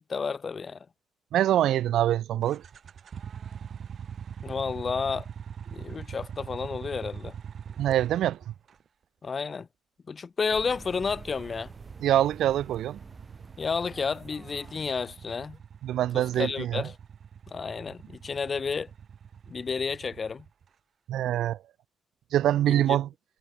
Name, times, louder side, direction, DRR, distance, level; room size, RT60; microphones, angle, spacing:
voice 1, 0.1-0.8 4.4-5.3 5.7-7.3 9.2-9.7 10.1-11.7 13.6-15.6 16.1-16.9 17.5-18.9 19.5-20.4 22.7-23.0, left 5 dB, 40° left, 2.0 m, -31 dB
voice 2, 1.3-2.6 7.8-8.5 12.0-13.0 15.8-16.9 21.1-21.6 22.3-23.1, right 12 dB, 80° right, 0.5 m, -24 dB
sound 1, 2.4-8.8 10.6-20.7, right 7 dB, 55° right, 4.8 m, -43 dB
sound 2, 10.5-15.6, right 4 dB, 30° right, 1.8 m, -48 dB
cardioid pair, 90°, 0 cm